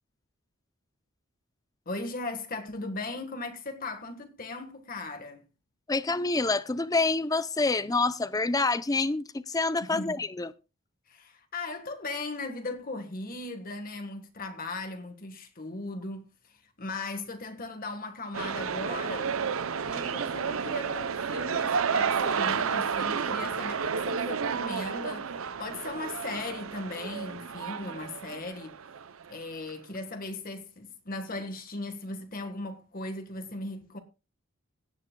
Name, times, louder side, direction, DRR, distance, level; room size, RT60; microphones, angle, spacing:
voice 1, 1.8-5.4 9.8-10.2 11.1-19.3 19.8-28.7 29.3-34.0, left 2 dB, 45° left, 1.5 m, -38 dB
voice 2, 5.9-10.5, left 3 dB, 15° left, 0.5 m, -27 dB
sound 1, 18.3-29.3 29.7-29.8, right 6 dB, 75° right, 0.6 m, -31 dB
17.0 x 9.7 x 2.3 m
head